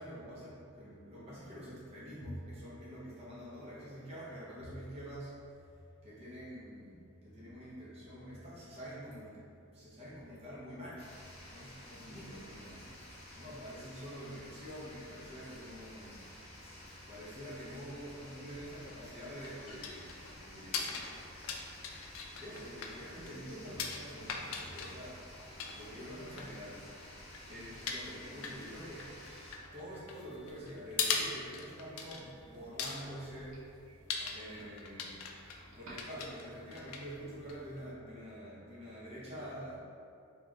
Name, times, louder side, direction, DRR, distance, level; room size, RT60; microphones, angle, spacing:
voice 1, 0.0-5.4 5.7-11.1 11.5-12.9 13.3-16.2 17.1-20.1 20.4-21.2 22.4-25.3 25.7-26.8 27.5-29.1 29.7-34.0 34.3-35.1 35.7-39.8, equal, 30° right, -8 dB, 0.7 m, -46 dB
sound 1, 11.0-29.6, left 1 dB, 30° left, 0.6 m, -52 dB
sound 2, 18.9-37.9, left 5 dB, 90° left, 0.4 m, -42 dB
Doorbell, 27.7-36.7, right 2 dB, 90° right, 0.5 m, -60 dB
3.1 x 2.4 x 3.6 m, 2.5 s
head